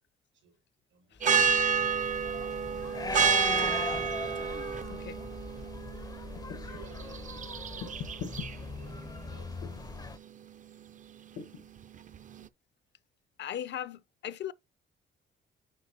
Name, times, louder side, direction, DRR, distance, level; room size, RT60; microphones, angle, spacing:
voice 1, 0.9-1.8 3.4-4.4 5.5-5.7 6.5-9.0 9.3-10.2, right 4 dB, 75° right, 4.7 m, -55 dB
sound 1, 1.2-12.5, right 7 dB, 40° right, 0.5 m, -31 dB
sound 2, 1.4-10.2, left 3 dB, 20° left, 0.5 m, -39 dB
voice 2, 3.4-5.2 13.4-14.5, left 10 dB, 60° left, 0.6 m, -41 dB
sound 3, 6.3-6.8 7.8-8.5 9.6-9.9 11.4-11.7, left 7 dB, 90° left, 1.2 m, -41 dB
9.7 x 3.6 x 2.8 m
cardioid pair, 90°, 20 cm